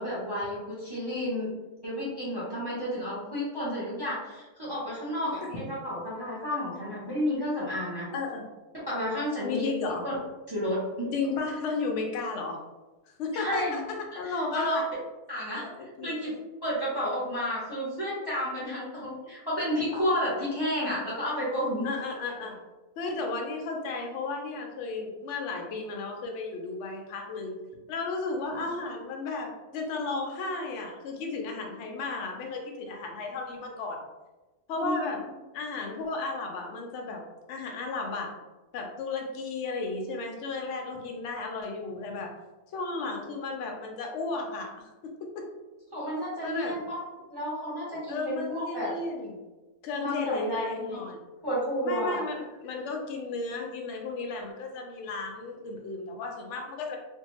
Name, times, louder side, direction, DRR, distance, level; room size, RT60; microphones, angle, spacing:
voice 1, 0.0-1.5 1.8-8.1 8.9-9.7 10.0-10.1 10.5-11.1 13.3-13.8 14.2-14.8 15.3-15.7 16.0-16.3 16.6-21.9 28.5-28.6 34.8-35.2 45.9-47.0 47.3-48.9 50.0-51.0 51.4-52.2, equal, 30° right, -8 dB, 0.4 m, -31 dB
voice 2, 8.1-8.4 9.4-10.0 11.1-12.6 13.1-13.8 14.2-14.8 15.8-16.1 21.8-22.6 23.0-27.5 27.9-34.0 34.7-35.2 35.5-37.2 37.5-38.3 38.7-42.3 42.7-45.5 46.4-46.8 48.1-49.3 49.8-51.2 51.8-57.0, left 3 dB, 70° left, 2 dB, 0.7 m, -34 dB
2.6 x 2.1 x 2.9 m, 1.1 s
omnidirectional pair, 1.6 m